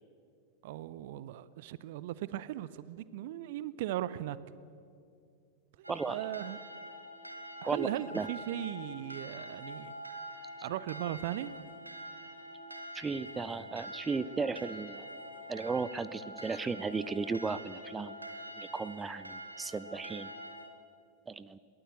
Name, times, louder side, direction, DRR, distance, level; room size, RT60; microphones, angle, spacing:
voice 1, 0.6-4.4 5.8-6.6 7.6-9.9 10.6-11.5, right 13 dB, 50° right, 17 dB, 0.7 m, -38 dB
sound 1, 5.8-20.7, equal, 85° right, 2.0 m, -45 dB
voice 2, 5.9-6.2 7.6-7.9 8.1-8.3 10.6-10.7 12.9-15.1 15.5-18.2 18.6-20.3 21.3-21.6, right 4 dB, 15° right, 15 dB, 0.7 m, -35 dB
22.5 x 19.0 x 8.4 m, 2.4 s
figure-of-eight pair, 90°, 0 cm